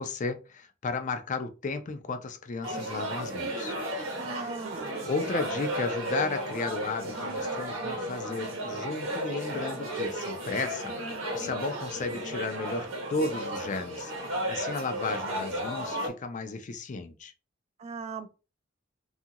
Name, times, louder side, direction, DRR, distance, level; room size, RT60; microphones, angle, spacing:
voice 1, 0.0-3.8 4.4-4.5 5.0-10.9 11.3-14.1 14.5-17.3, left 3 dB, 40° left, 0.4 m, -34 dB
sound 1, 2.6-16.1, right 1 dB, 80° right, 0.9 m, -34 dB
voice 2, 4.2-5.1 17.8-18.3, right 4 dB, 35° right, 0.3 m, -39 dB
2.7 x 2.4 x 2.8 m
head